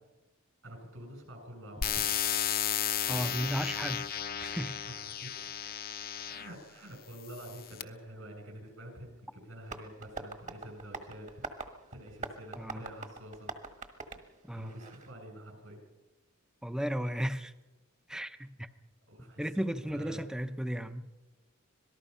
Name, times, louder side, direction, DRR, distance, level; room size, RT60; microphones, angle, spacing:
voice 1, 0.6-2.0 4.7-5.3 6.3-11.3 11.9-13.5 14.5-15.8 19.1-20.3, right 1 dB, 70° right, 7.4 m, -47 dB
sound 1, 1.8-6.6 7.3-7.8, left 10 dB, 45° left, 0.8 m, -34 dB
voice 2, 3.1-4.8 6.3-6.4 12.6-12.8 14.5-14.8 16.6-17.5 18.1-18.7 19.4-21.1, equal, 5° right, 0.7 m, -35 dB
Tap, 9.6-15.1, right 3 dB, 35° right, 1.5 m, -44 dB
26.0 x 18.5 x 5.6 m
head